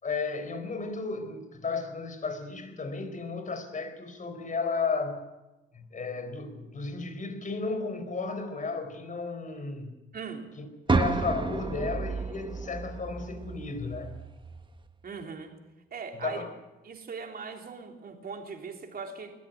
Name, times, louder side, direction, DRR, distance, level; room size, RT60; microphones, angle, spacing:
voice 1, 0.0-5.2 5.7-9.9 10.6-14.1 16.2-16.5, left 4 dB, 40° left, 8 dB, 4.3 m, -34 dB
voice 2, 10.1-10.5 15.0-15.5 15.9-16.4 16.8-19.3, right 5 dB, 50° right, 3 dB, 3.4 m, -39 dB
sound 1, 10.9-14.9, right 3 dB, 25° right, 1.3 m, -31 dB
21.5 x 14.0 x 9.3 m, 1.0 s
cardioid pair, 90°, 20 cm